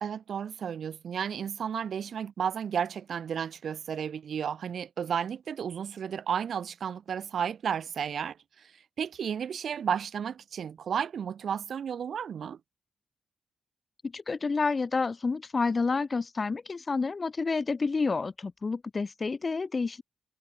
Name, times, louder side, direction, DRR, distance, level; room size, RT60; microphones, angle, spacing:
voice 1, 0.0-8.7 9.0-12.6, right 8 dB, 55° right, 1.7 m, -33 dB
voice 2, 14.0-20.0, left 4 dB, 25° left, 2.6 m, -29 dB
wide cardioid pair, 170°, 0 cm